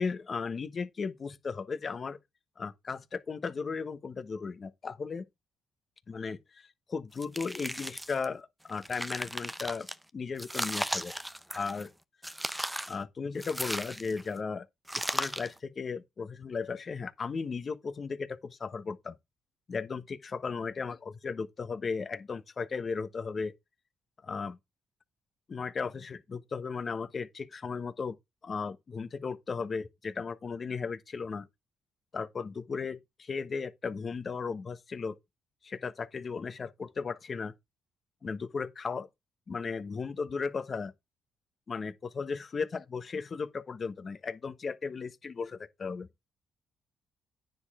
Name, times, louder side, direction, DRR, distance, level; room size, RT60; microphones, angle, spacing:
voice 1, 0.0-2.2 2.6-5.3 6.1-9.9 10.1-11.1 11.5-11.9 12.9-14.7 14.9-19.1 19.7-23.5 24.2-24.6 25.5-28.2 28.4-31.5 32.1-35.2 35.6-37.5 38.2-39.1 39.5-40.9 41.7-46.1, left 5 dB, 40° left, 1.1 m, -36 dB
sound 1, 7.2-8.2 8.7-9.9 10.4-11.9 12.2-13.0 13.4-14.3 14.9-15.6, equal, 5° right, 0.7 m, -36 dB
9.8 x 6.5 x 3.7 m
cardioid pair, 90°, 0 cm